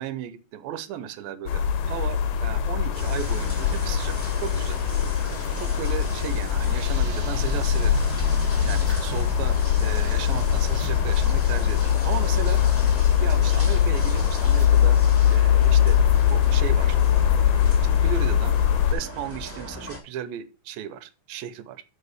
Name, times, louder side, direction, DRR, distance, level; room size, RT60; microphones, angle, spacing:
voice 1, 0.0-4.8 5.6-8.0 8.6-12.6 13.2-15.0 15.3-16.0 16.3-17.5 17.8-18.6 18.9-21.8, right 10 dB, 85° right, 13 dB, 2.5 m, -35 dB
sound 1, 1.5-18.9, left 9 dB, 70° left, 1.9 m, -21 dB
sound 2, 2.9-20.0, equal, 5° left, 1.5 m, -38 dB
sound 3, 6.4-16.3, right 6 dB, 65° right, 2.1 m, -42 dB
8.3 x 4.9 x 4.8 m, 0.31 s
omnidirectional pair, 4.2 m